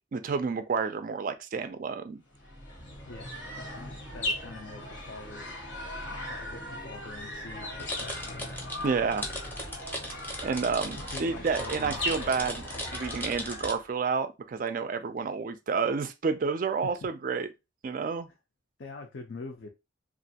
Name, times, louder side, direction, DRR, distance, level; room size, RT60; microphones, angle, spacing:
voice 1, 0.1-2.2 8.8-9.3 10.4-12.6 12.9-17.5 17.8-18.3, right 5 dB, 45° right, 0.3 m, -30 dB
sound 1, 2.3-13.9, left 1 dB, 80° left, 1.1 m, -38 dB
voice 2, 3.1-5.5 6.2-8.5 10.9-12.9 16.8-16.9 18.8-19.7, left 3 dB, 60° left, 0.5 m, -45 dB
sound 2, 7.8-13.7, left 1 dB, 10° left, 0.6 m, -38 dB
3.0 x 2.4 x 2.7 m
head